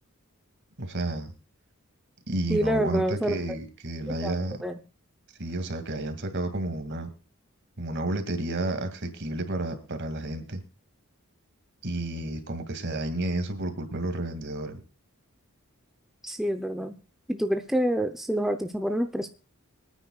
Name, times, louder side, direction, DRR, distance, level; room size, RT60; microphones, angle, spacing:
voice 1, 0.8-1.3 2.3-4.6 5.4-7.1 7.8-10.6 11.8-14.8, right 2 dB, 50° right, 8 dB, 2.3 m, -31 dB
voice 2, 2.5-3.4 4.2-4.3 4.6-4.8 16.2-17.0 17.3-19.3, equal, ahead, 6 dB, 0.6 m, -27 dB
24.5 x 9.5 x 2.3 m, 0.33 s
head